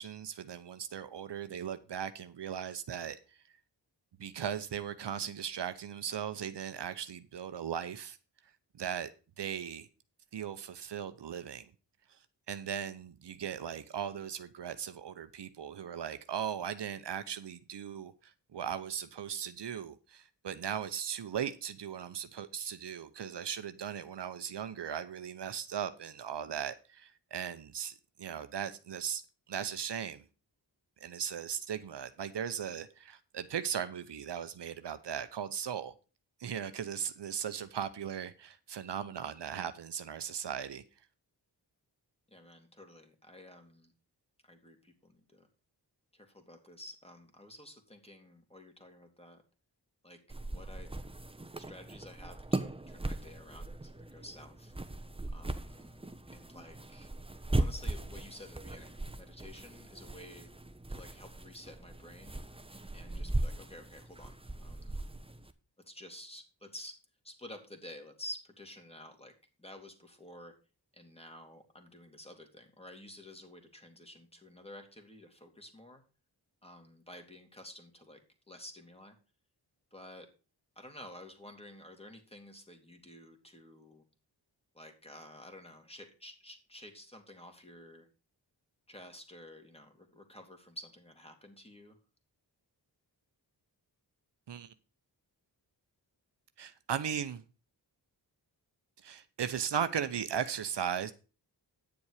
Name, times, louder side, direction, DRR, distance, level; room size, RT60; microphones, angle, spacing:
voice 1, 0.0-3.2 4.2-8.2 8.7-9.1 9.4-9.9 10.3-11.7 12.5-29.2 29.5-30.2 31.0-35.9 36.4-40.8 94.5-94.7 96.6-97.4 99.0-101.1, right 8 dB, 70° right, 0.8 m, -38 dB
voice 2, 42.3-43.9 44.4-45.5 46.1-49.4 50.0-50.9 51.6-54.7 55.3-57.1 57.6-60.5 60.9-62.4 62.9-64.4 64.6-65.0 65.8-67.0 67.2-69.3 69.6-70.6 70.9-76.0 76.6-78.2 78.5-79.2 79.9-80.3 80.8-84.0 84.7-88.1 88.9-92.0, left 1 dB, 15° left, 2.6 m, -51 dB
sound 1, 50.3-65.5, right 2 dB, 15° right, 1.0 m, -38 dB
9.5 x 7.1 x 4.9 m
cardioid pair, 45°, 43 cm